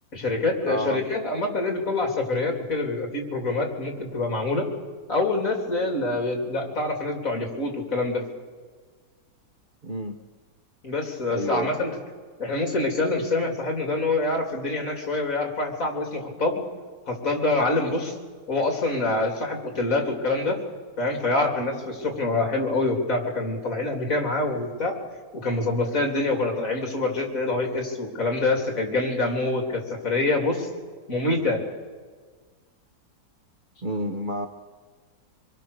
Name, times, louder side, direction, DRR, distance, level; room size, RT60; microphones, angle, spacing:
voice 1, 0.1-4.7 5.1-8.2 10.8-12.0 12.4-16.6 17.1-18.2 18.5-20.6 21.0-25.0 25.3-30.7 31.1-31.6, left 2 dB, 45° left, 2 dB, 3.4 m, -26 dB
voice 2, 0.7-1.0 9.8-10.2 11.3-11.7 33.8-34.5, equal, 35° right, 5 dB, 0.9 m, -29 dB
26.0 x 22.5 x 6.7 m, 1.5 s
omnidirectional pair, 2.0 m